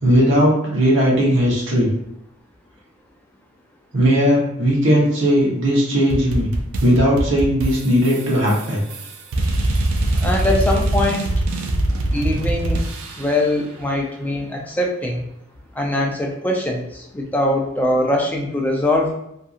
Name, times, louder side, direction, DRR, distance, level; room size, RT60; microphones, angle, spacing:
voice 1, 0.0-1.9 3.9-6.5 6.8-8.8 10.0-10.1, equal, 60° right, -5 dB, 0.9 m, -17 dB
sound 1, 6.1-13.5, right 1 dB, 85° right, 0.4 m, -23 dB
voice 2, 10.2-11.3 12.1-12.9 13.2-15.2 15.8-19.1, left 1 dB, 10° left, 0 dB, 0.3 m, -22 dB
2.6 x 2.6 x 2.4 m, 0.79 s
head